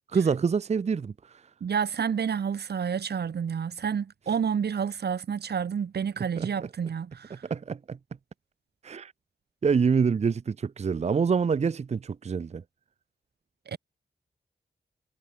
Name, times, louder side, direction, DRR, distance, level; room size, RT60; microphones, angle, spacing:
voice 1, 0.1-1.4 6.4-6.5 7.3-8.0 8.8-9.1 9.6-12.6, right 5 dB, 40° right, 0.7 m, -26 dB
voice 2, 1.6-7.4 13.7-13.8, right 7 dB, 80° right, 2.1 m, -29 dB
wide cardioid pair, 170°, 17 cm